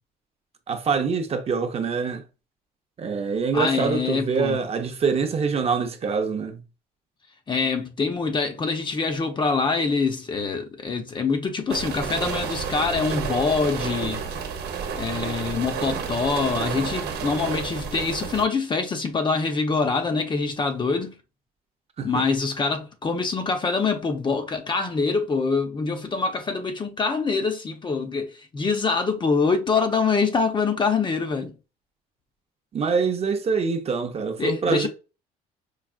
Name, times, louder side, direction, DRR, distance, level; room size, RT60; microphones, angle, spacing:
voice 1, 0.7-2.2 3.0-6.6 22.0-22.2 32.7-34.9, right 5 dB, 35° right, 0.6 m, -25 dB
voice 2, 3.5-4.6 7.5-14.2 14.9-21.2 22.0-31.5 34.4-34.9, left 4 dB, 30° left, 0.7 m, -25 dB
sound 1, 11.7-18.5, right 6 dB, 70° right, 0.9 m, -30 dB
4.7 x 2.3 x 2.4 m
cardioid pair, 110°, 17 cm